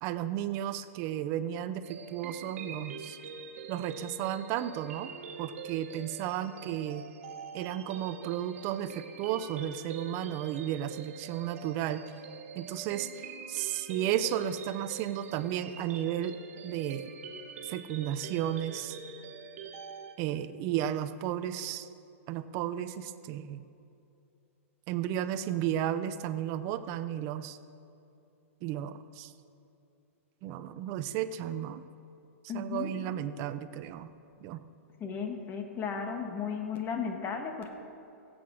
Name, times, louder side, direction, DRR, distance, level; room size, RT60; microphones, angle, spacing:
voice 1, 0.0-3.2 3.7-5.1 5.4-7.0 7.5-12.0 12.5-17.1 17.6-19.0 20.2-21.9 22.3-23.6 24.9-27.6 28.6-29.3 30.4-31.8 32.5-34.1 34.4-34.6, right 11 dB, 40° right, 12 dB, 0.7 m, -33 dB
sound 1, 1.8-20.1, right 5 dB, 75° right, 1.5 m, -45 dB
voice 2, 32.5-32.9 35.0-37.7, left 6 dB, 30° left, 4 dB, 1.7 m, -35 dB
16.5 x 8.0 x 6.3 m, 2.7 s
hypercardioid pair, 130°, 7 cm